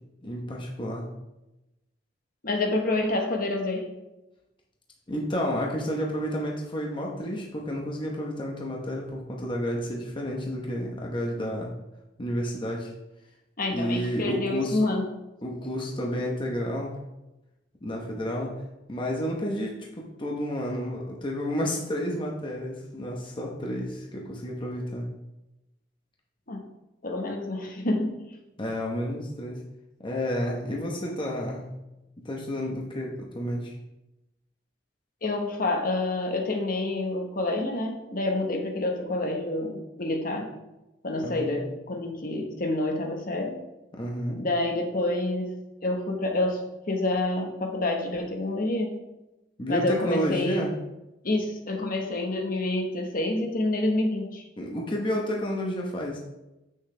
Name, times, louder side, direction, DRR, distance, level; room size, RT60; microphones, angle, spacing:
voice 1, 0.2-1.1 5.1-11.7 12.2-12.9 13.7-14.8 15.4-17.0 17.8-18.6 18.9-25.1 28.6-29.6 30.0-31.7 32.2-33.8 41.2-41.5 43.9-44.4 49.6-50.7 54.6-56.2, equal, 25° left, -1 dB, 1.0 m, -31 dB
voice 2, 2.4-3.9 13.6-15.0 26.5-26.6 27.0-28.2 35.2-40.5 41.0-43.6 44.4-45.6 45.8-49.0 49.7-50.7 51.2-54.4, left 2 dB, 50° left, 2 dB, 1.2 m, -28 dB
8.1 x 6.4 x 3.3 m, 0.97 s
head